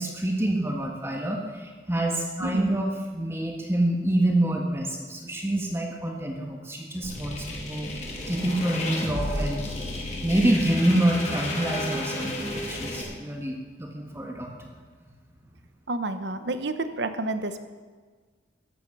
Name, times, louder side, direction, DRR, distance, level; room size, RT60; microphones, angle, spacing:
voice 1, 0.0-7.9 8.3-9.7 10.2-14.7, right 1 dB, 15° right, 0 dB, 1.5 m, -27 dB
voice 2, 2.4-2.7 15.9-17.6, right 2 dB, 70° right, 10 dB, 0.9 m, -30 dB
sound 1, 7.0-13.0, left 1 dB, 35° left, 2.8 m, -32 dB
14.5 x 10.5 x 6.2 m, 1.5 s
head